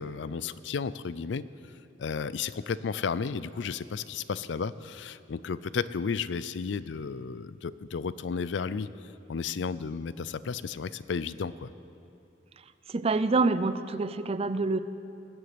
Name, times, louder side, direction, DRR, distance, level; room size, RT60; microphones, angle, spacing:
voice 1, 0.0-1.4 2.0-8.9 9.3-11.7, left 5 dB, 70° left, 16 dB, 0.4 m, -33 dB
voice 2, 12.9-14.8, right 3 dB, 35° right, 13 dB, 0.5 m, -26 dB
19.5 x 8.0 x 7.9 m, 2.6 s
head